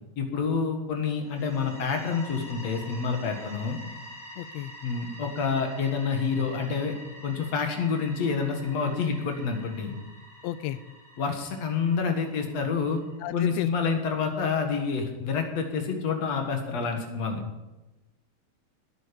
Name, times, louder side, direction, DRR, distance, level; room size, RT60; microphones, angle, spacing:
voice 1, 0.2-3.8 4.8-7.0 7.2-10.0 11.2-13.0 13.3-17.4, left 5 dB, 60° left, 4 dB, 2.8 m, -28 dB
sound 1, 1.2-13.9, equal, 15° right, 2.1 m, -47 dB
voice 2, 4.3-4.7 10.4-10.8 13.2-14.0, left 13 dB, 80° left, 15 dB, 1.6 m, -34 dB
19.5 x 9.3 x 5.3 m, 1.0 s
omnidirectional pair, 3.5 m